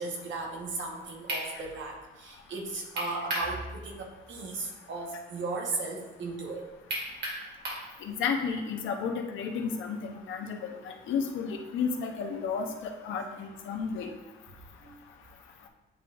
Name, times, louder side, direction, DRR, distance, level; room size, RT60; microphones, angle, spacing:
voice 1, 0.0-6.6 14.8-15.0, right 3 dB, 70° right, 1 dB, 1.3 m, -36 dB
sound 1, 1.3-1.5 3.0-3.5 3.9-4.0 6.9-7.9, right 1 dB, 55° right, 2.0 m, -33 dB
voice 2, 8.0-14.1, left 6 dB, 80° left, 3 dB, 0.8 m, -32 dB
9.9 x 3.8 x 2.5 m, 1.1 s
cardioid pair, 90°, 20 cm